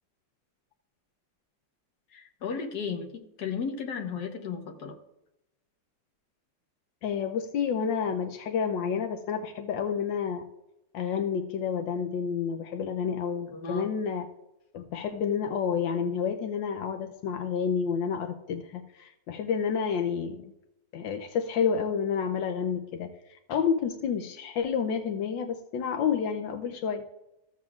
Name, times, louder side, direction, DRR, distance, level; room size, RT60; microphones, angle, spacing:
voice 1, 2.1-5.0 13.5-13.9, left 6 dB, 65° left, 3 dB, 1.6 m, -35 dB
voice 2, 7.0-10.5 10.9-14.3 14.7-20.5 20.9-23.1 23.5-27.0, left 7 dB, 85° left, 5 dB, 1.4 m, -29 dB
15.0 x 7.5 x 2.4 m, 0.89 s
omnidirectional pair, 2.0 m